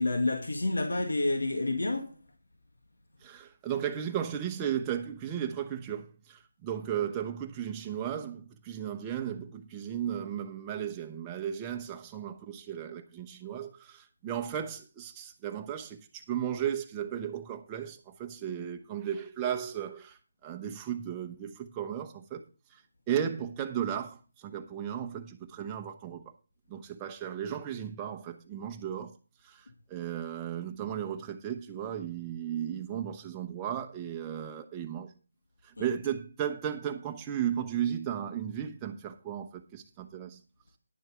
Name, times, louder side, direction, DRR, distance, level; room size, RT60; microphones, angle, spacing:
voice 1, 0.0-2.2 35.8-35.9, left 2 dB, 85° left, 1.8 m, -29 dB
voice 2, 3.2-22.4 22.7-22.8 23.1-26.3 26.7-29.2 29.4-35.1 35.6-40.4, right 9 dB, 15° right, 0.9 m, -35 dB
10.5 x 7.1 x 5.0 m
figure-of-eight pair, 165°, 0 cm